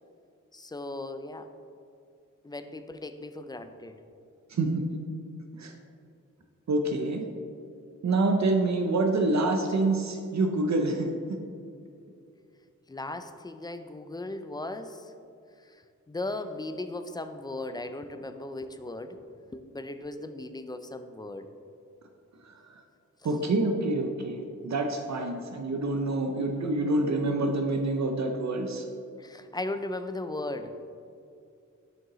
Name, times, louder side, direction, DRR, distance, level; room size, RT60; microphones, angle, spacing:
voice 1, 0.5-1.5 2.4-4.0 12.9-15.1 15.6-19.3 19.5-21.5 29.2-30.8, left 2 dB, 15° left, 9 dB, 0.3 m, -37 dB
voice 2, 4.5-4.8 5.6-5.7 6.7-7.2 8.0-11.1 22.4-22.8 23.2-28.9, right 2 dB, 65° right, 3 dB, 0.6 m, -27 dB
7.5 x 5.3 x 3.0 m, 2.5 s
wide cardioid pair, 105°, 31 cm